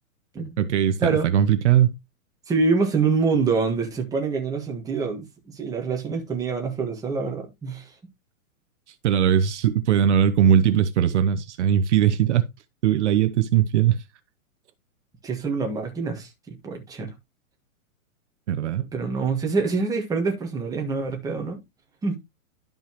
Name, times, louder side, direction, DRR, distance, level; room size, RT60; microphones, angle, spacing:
voice 1, 0.6-2.0 9.0-12.5 12.8-14.0 18.5-18.8, right 9 dB, 55° right, 0.8 m, -20 dB
voice 2, 2.5-7.9 15.2-17.1 18.9-21.6 22.0-22.2, right 4 dB, 10° right, 1.6 m, -25 dB
11.5 x 5.4 x 3.0 m
hypercardioid pair, 155°, 41 cm